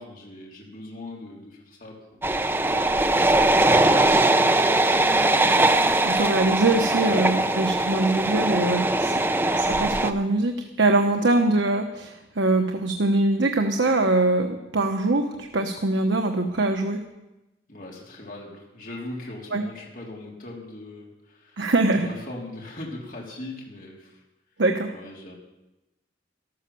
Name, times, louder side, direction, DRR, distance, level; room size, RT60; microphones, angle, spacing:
voice 1, 0.0-2.3 3.2-5.3 7.0-9.5 11.1-11.2 17.7-24.2 24.9-25.3, left 2 dB, 45° left, -3 dB, 3.5 m, -40 dB
sound 1, 2.2-10.1, right 2 dB, 10° right, 0.5 m, -21 dB
voice 2, 6.0-9.1 9.6-17.0 19.5-19.6 21.6-22.1 24.6-24.9, right 2 dB, 80° right, 4 dB, 1.1 m, -23 dB
13.5 x 13.0 x 7.1 m, 0.99 s
head